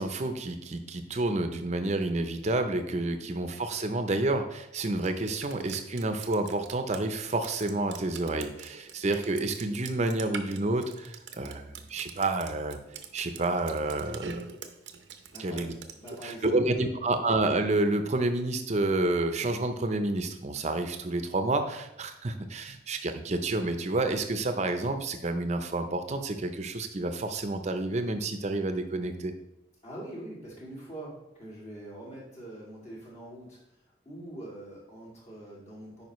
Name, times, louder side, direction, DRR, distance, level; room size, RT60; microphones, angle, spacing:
voice 1, 0.0-12.8 13.1-14.4 15.4-15.7 16.2-29.3, right 2 dB, 40° right, 8 dB, 0.6 m, -29 dB
Drip, 5.0-16.3, right 6 dB, 90° right, 0.7 m, -45 dB
voice 2, 15.3-15.7 16.0-17.2 29.8-33.6 34.0-36.0, right 1 dB, 40° left, -5 dB, 2.6 m, -44 dB
9.4 x 4.9 x 3.1 m, 0.86 s
head